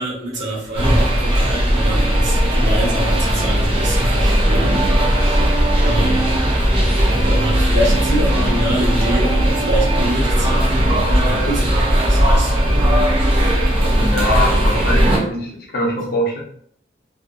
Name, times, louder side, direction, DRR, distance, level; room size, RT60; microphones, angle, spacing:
voice 1, 0.0-4.9 5.1-5.4 5.8-6.3 7.1-13.0 13.3-14.1, right 1 dB, 70° right, -6 dB, 1.1 m, -26 dB
sound 1, 0.7-15.2, equal, 30° right, 0.7 m, -17 dB
voice 2, 13.9-16.4, left 1 dB, 55° left, -2 dB, 0.7 m, -23 dB
2.7 x 2.2 x 2.6 m, 0.62 s
head